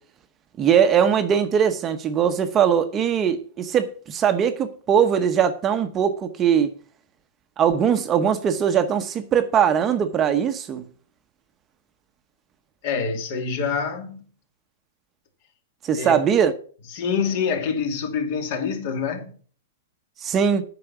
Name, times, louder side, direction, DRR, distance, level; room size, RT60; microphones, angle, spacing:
voice 1, 0.6-6.7 7.6-10.8 15.8-16.5 20.2-20.6, right 8 dB, 20° right, 0.9 m, -20 dB
voice 2, 12.8-14.2 15.9-16.2 16.9-19.3, left 6 dB, 50° left, 2.5 m, -26 dB
8.7 x 6.0 x 7.0 m
hypercardioid pair, 145°, 0 cm